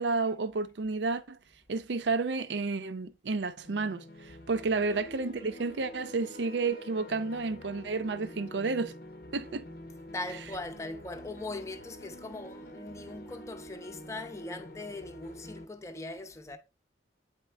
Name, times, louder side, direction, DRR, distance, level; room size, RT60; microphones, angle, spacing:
voice 1, 0.0-1.4 1.7-9.0 9.3-9.7, right 4 dB, 85° right, 0.6 m, -31 dB
sound 1, 3.6-15.6, left 1 dB, 55° left, 0.7 m, -47 dB
voice 2, 4.8-5.1 10.1-16.6, left 2 dB, 15° left, 0.7 m, -40 dB
8.4 x 4.4 x 3.3 m
head